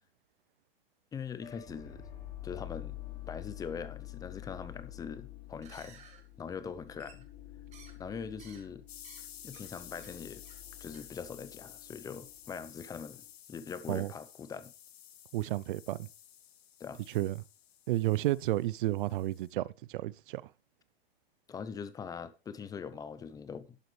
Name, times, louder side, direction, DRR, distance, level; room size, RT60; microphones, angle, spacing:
voice 1, 1.1-2.1 2.4-3.0 3.3-6.0 6.4-7.3 8.0-8.8 9.4-10.4 10.8-13.2 13.5-14.7 16.8-17.0 21.5-23.8, left 6 dB, 10° left, 0.7 m, -42 dB
sound 1, 1.4-13.3, left 13 dB, 30° left, 4.0 m, -48 dB
sound 2, 5.5-6.2 7.0-7.4 7.7-8.0 8.4-8.6 9.0-9.2 9.5-9.7 10.0-10.1 10.4-10.7 10.9-11.0, right 7 dB, 20° right, 2.2 m, -56 dB
sound 3, 8.9-19.5, left 10 dB, 85° left, 1.0 m, -53 dB
voice 2, 15.3-16.1 17.1-17.4 17.9-20.4, right 15 dB, 60° right, 0.5 m, -31 dB
11.5 x 8.1 x 3.3 m
hypercardioid pair, 135°, 30 cm